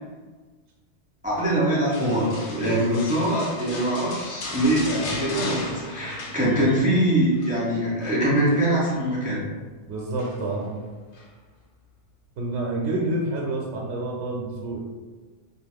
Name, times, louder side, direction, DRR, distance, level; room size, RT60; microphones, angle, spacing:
voice 1, 1.2-9.5, right 1 dB, 10° right, -8 dB, 0.4 m, -23 dB
sound 1, 1.9-6.9 7.2-7.6 8.0-9.0 10.2-10.6 11.1-11.3, left 2 dB, 85° left, 0.9 m, -36 dB
voice 2, 9.9-10.7 12.4-14.8, right 2 dB, 80° right, -2 dB, 0.9 m, -28 dB
2.5 x 2.3 x 3.4 m, 1.4 s
omnidirectional pair, 1.2 m